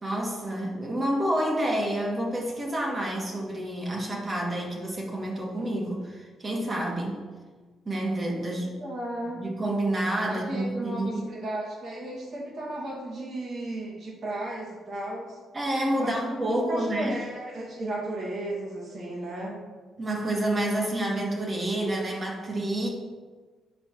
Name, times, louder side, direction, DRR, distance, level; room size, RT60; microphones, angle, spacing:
voice 1, 0.0-7.2 7.9-8.7 9.4-11.2 15.5-17.2 20.0-22.9, right 1 dB, 30° right, -1 dB, 1.8 m, -28 dB
voice 2, 8.6-9.4 10.3-15.4 16.0-16.2 16.7-19.6, right 1 dB, 55° right, -4 dB, 2.2 m, -34 dB
9.7 x 4.4 x 3.2 m, 1.4 s
cardioid pair, 90°, 0 cm